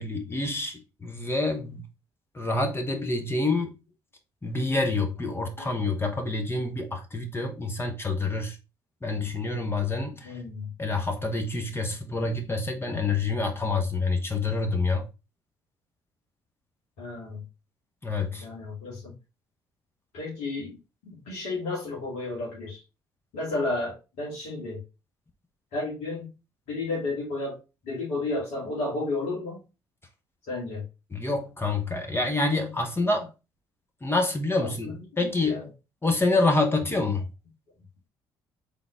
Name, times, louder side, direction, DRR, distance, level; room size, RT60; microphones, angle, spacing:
voice 1, 0.0-1.8 2.3-3.8 4.4-8.6 9.0-10.3 10.8-15.1 18.0-18.5 31.1-33.3 34.0-35.6 36.0-37.2, left 3 dB, 20° left, 1.1 m, -27 dB
voice 2, 10.2-10.7 12.8-13.1 17.0-17.4 18.4-19.1 20.1-20.8 21.1-22.8 23.3-24.8 25.7-26.3 26.7-29.6 30.5-30.8 34.6-34.7 35.1-35.7, left 2 dB, 75° left, 1.8 m, -32 dB
3.8 x 3.5 x 3.7 m
hypercardioid pair, 50°, 11 cm